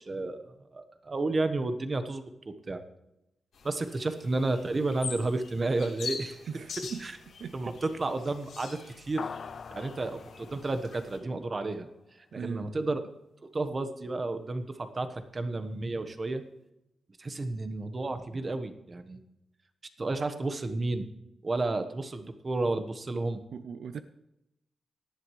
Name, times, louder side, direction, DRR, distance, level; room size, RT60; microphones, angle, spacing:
voice 1, 0.0-2.8 3.6-6.4 6.8-7.1 7.5-9.3 9.7-11.9 12.3-13.0 13.5-16.4 17.2-19.2 20.0-21.1 21.4-23.4, right 2 dB, 35° right, 1.3 m, -32 dB
sound 1, 3.5-11.2, left 5 dB, 85° left, 3.5 m, -44 dB
voice 2, 6.5-7.7 12.3-12.7 23.5-24.0, right 6 dB, 75° right, 0.5 m, -40 dB
sound 2, 9.2-11.9, left 5 dB, 60° left, 0.4 m, -43 dB
18.0 x 11.0 x 3.3 m
cardioid pair, 85°, 0 cm